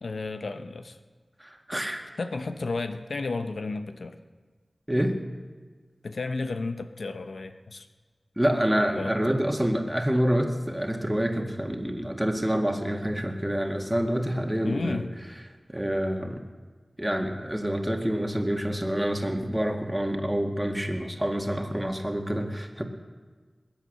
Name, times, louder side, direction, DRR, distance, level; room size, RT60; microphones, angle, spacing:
voice 1, 0.0-1.0 2.2-4.2 6.0-7.9 9.0-9.4 14.6-15.1, left 3 dB, 90° left, 8 dB, 0.8 m, -32 dB
voice 2, 1.4-2.0 4.9-5.2 8.4-15.1 15.7-16.4 17.0-22.8, equal, 15° right, 3 dB, 2.0 m, -27 dB
21.5 x 8.2 x 6.7 m, 1.4 s
wide cardioid pair, 45°, 0 cm